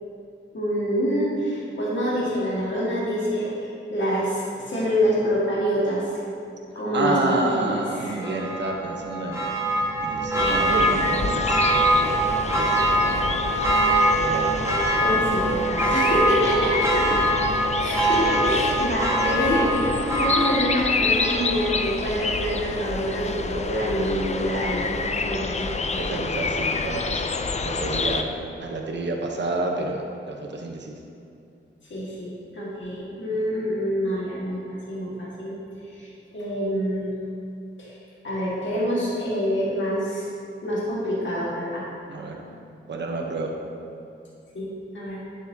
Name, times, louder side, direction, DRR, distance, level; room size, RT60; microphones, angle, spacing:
voice 1, 0.5-6.2 6.8-8.2 15.0-17.2 17.8-25.7 31.9-35.5 35.8-37.1 37.8-37.9 38.2-40.3 40.6-41.8 44.5-44.7 44.9-45.2, equal, 65° left, -7 dB, 1.8 m, -26 dB
voice 2, 6.9-9.5 10.0-12.2 12.5-13.2 14.2-15.0 25.9-27.2 27.6-30.9 42.1-42.3 42.9-43.5, right 2 dB, 60° right, 1 dB, 0.9 m, -29 dB
Church bell, 8.2-21.9 22.2-22.3, right 1 dB, 15° right, 1.4 m, -23 dB
sound 1, 10.4-28.2, left 4 dB, 35° left, 0.4 m, -28 dB
9.3 x 7.4 x 2.7 m, 2.6 s
wide cardioid pair, 80°, 21 cm